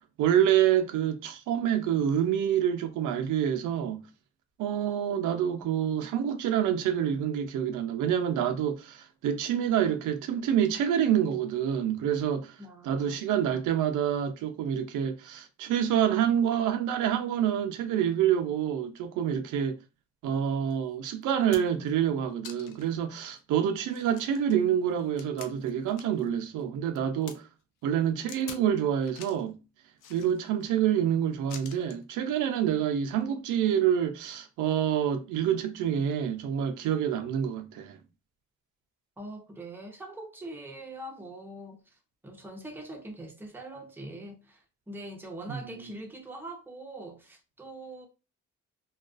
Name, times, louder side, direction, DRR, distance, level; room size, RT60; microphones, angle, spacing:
voice 1, 0.2-4.0 4.6-12.6 12.8-19.8 20.2-27.5 27.8-29.6 30.1-38.0 45.5-45.9, right 9 dB, 85° right, 0.5 m, -27 dB
voice 2, 12.6-13.2 39.2-48.1, right 1 dB, 5° right, 0.6 m, -43 dB
sound 1, 20.7-20.8 21.2-21.9 22.4-22.9 23.4-23.5 23.9-26.3 26.6-27.4 28.3-28.7 29.0-29.5 30.0-30.7 31.5-32.0 33.1-33.3, left 7 dB, 90° left, 0.5 m, -47 dB
2.3 x 2.3 x 2.4 m
cardioid pair, 90°, 30 cm